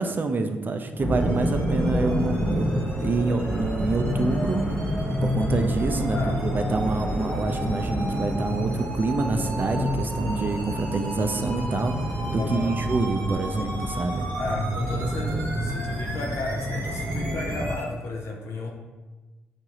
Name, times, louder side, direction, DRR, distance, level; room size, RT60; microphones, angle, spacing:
voice 1, 0.0-2.7 3.0-4.6 5.2-11.9 12.3-14.3, right 3 dB, 40° right, 6 dB, 0.4 m, -27 dB
sound 1, 1.0-17.7, equal, 20° left, 0.8 m, -28 dB
sound 2, 1.2-17.8, right 1 dB, 80° right, 0.9 m, -37 dB
voice 2, 6.1-6.5 12.4-12.8 14.4-18.7, left 3 dB, 70° left, 1 dB, 0.6 m, -33 dB
5.1 x 2.4 x 2.9 m, 1.2 s
supercardioid pair, 50°, 5 cm